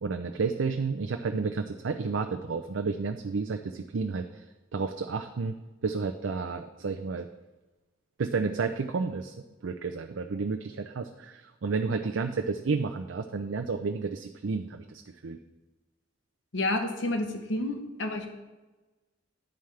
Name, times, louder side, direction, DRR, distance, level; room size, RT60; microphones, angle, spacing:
voice 1, 0.0-4.4 4.7-5.6 5.8-7.3 8.2-9.3 9.6-15.4, right 4 dB, 85° right, 6 dB, 0.5 m, -31 dB
voice 2, 16.5-18.3, left 2 dB, 75° left, 5 dB, 1.0 m, -30 dB
9.8 x 9.2 x 3.3 m, 1.1 s
head